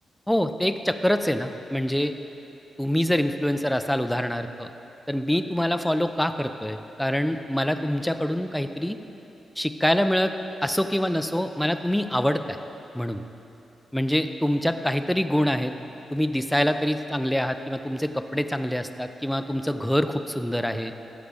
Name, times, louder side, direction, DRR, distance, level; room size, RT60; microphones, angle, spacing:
voice 1, 0.3-2.1 2.8-4.7 5.1-9.0 9.6-10.3 10.6-12.6 12.9-13.2 13.9-15.7 16.1-20.9, equal, 5° left, 8 dB, 0.3 m, -25 dB
14.5 x 6.3 x 3.4 m, 3.0 s
wide cardioid pair, 140°, 0 cm